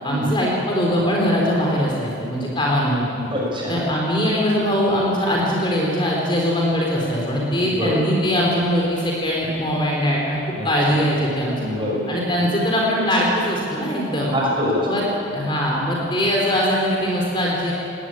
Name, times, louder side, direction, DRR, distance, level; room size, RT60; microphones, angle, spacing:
voice 1, 0.0-3.0 3.7-11.6 12.1-14.3 14.9-15.0 15.3-17.7, equal, 25° left, -3 dB, 3.8 m, -21 dB
voice 2, 3.3-3.7 7.6-8.0 10.5-11.0 11.6-12.1 12.4-12.5 14.2-14.9, left 1 dB, 25° right, -3 dB, 6.2 m, -25 dB
20.0 x 18.5 x 8.9 m, 2.6 s
head